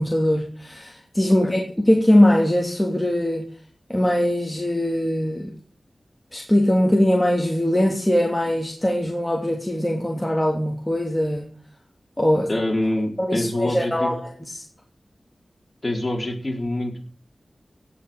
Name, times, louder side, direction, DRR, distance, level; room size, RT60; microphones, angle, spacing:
voice 1, 0.0-3.5 3.9-5.5 6.3-11.5 12.2-12.5 13.3-14.6, left 1 dB, 10° left, 0 dB, 2.8 m, -21 dB
voice 2, 12.5-14.1 15.8-17.1, left 1 dB, 30° left, 1 dB, 4.5 m, -25 dB
17.0 x 6.0 x 8.8 m, 0.42 s
wide cardioid pair, 95°, 0 cm